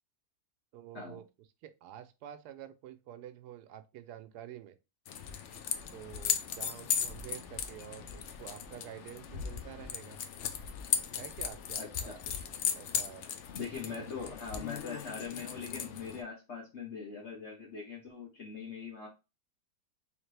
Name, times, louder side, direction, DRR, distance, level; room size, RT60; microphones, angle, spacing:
voice 1, 0.7-1.2 1.6-4.8 5.9-10.2 11.1-12.1 12.7-13.3 14.0-14.3, right 11 dB, 85° right, 1.1 m, -48 dB
sound 1, 5.1-16.2, left 8 dB, 70° left, 0.7 m, -37 dB
voice 2, 11.8-12.2 13.5-19.1, left 5 dB, 50° left, 1.1 m, -42 dB
3.5 x 3.2 x 3.2 m
omnidirectional pair, 1.7 m